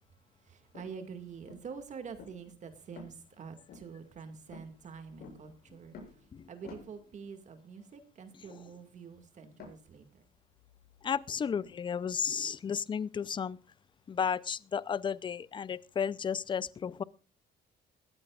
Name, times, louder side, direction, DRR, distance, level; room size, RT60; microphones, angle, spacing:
voice 1, 0.5-6.0 6.5-10.2, right 6 dB, 45° right, 2.2 m, -46 dB
sound 1, 0.7-7.3 9.5-11.7, left 4 dB, 65° left, 7.6 m, -54 dB
voice 2, 11.0-13.6 14.1-17.0, left 7 dB, 30° left, 0.6 m, -33 dB
21.0 x 15.5 x 2.5 m
cardioid pair, 110°, 17 cm